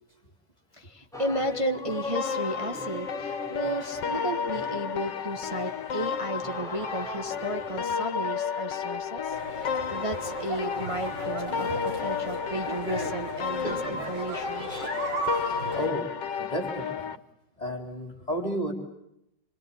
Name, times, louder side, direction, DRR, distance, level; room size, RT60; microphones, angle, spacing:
voice 1, 0.7-14.7, right 1 dB, 20° right, 5 dB, 1.3 m, -34 dB
sound 1, 1.1-7.8, left 1 dB, ahead, 4.4 m, -39 dB
sound 2, 2.2-17.2, left 7 dB, 90° left, 1.9 m, -32 dB
sound 3, 9.3-15.9, right 2 dB, 85° right, 6.0 m, -36 dB
voice 2, 11.5-12.4 13.6-14.0 14.7-14.9 15.4-16.1 16.4-17.1 17.6-18.7, equal, 20° left, 4 dB, 4.0 m, -34 dB
27.0 x 25.5 x 8.6 m, 0.81 s
omnidirectional pair, 1.8 m